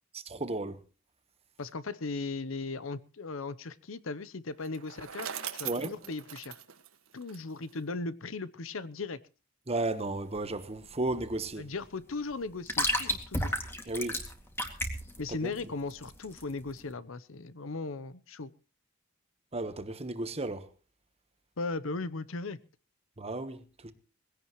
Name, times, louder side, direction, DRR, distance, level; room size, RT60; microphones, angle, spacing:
voice 1, 0.3-0.8 5.6-5.9 9.7-11.7 13.9-14.2 15.4-15.5 19.5-20.7 23.2-23.9, right 2 dB, 30° right, 1.2 m, -34 dB
voice 2, 1.6-6.6 7.1-9.2 11.6-13.5 15.2-18.5 21.6-22.6, left 3 dB, 70° left, 0.8 m, -37 dB
Bicycle, 4.6-7.8, right 9 dB, 85° right, 1.7 m, -41 dB
sound 1, 10.1-16.8, left 1 dB, 10° left, 2.2 m, -34 dB
20.5 x 16.5 x 3.1 m
head